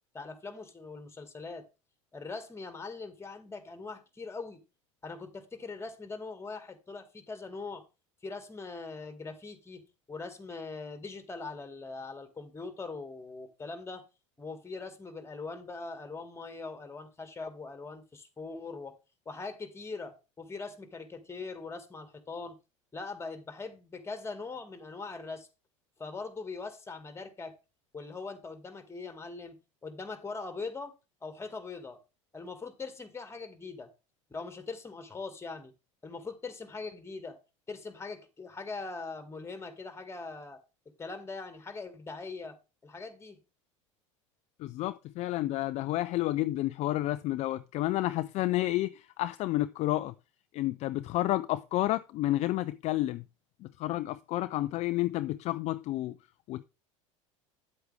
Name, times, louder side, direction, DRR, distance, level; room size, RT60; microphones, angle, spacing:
voice 1, 0.1-1.6 2.1-4.6 5.0-7.8 8.2-9.8 10.1-14.0 14.4-18.9 19.3-22.6 22.9-25.5 26.0-27.5 27.9-30.9 31.2-32.0 32.3-33.9 34.3-35.7 36.0-37.4 37.7-40.6 41.0-42.6 42.8-43.4, left 4 dB, 15° left, 1.9 m, -41 dB
voice 2, 44.6-50.1 50.5-53.2 53.6-56.1 56.5-56.6, left 16 dB, 45° left, 0.4 m, -30 dB
9.5 x 7.9 x 3.4 m
hypercardioid pair, 80°, 16 cm